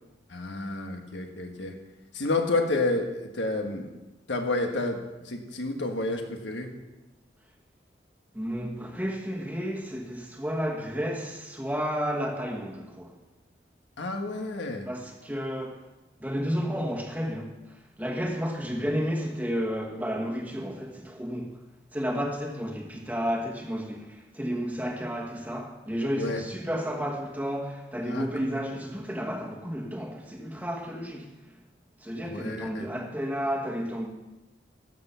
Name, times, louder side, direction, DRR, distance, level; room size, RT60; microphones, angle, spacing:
voice 1, 0.3-1.7 2.1-3.9 4.3-5.0 5.2-6.7 14.0-14.8 26.1-26.4 28.1-28.3 32.2-32.9, left 2 dB, 85° left, 1.5 m, -30 dB
voice 2, 8.3-13.1 14.8-15.8 16.2-17.5 18.0-21.6 21.9-31.3 32.0-34.1, equal, 10° right, 1.3 m, -32 dB
13.5 x 8.1 x 5.7 m
head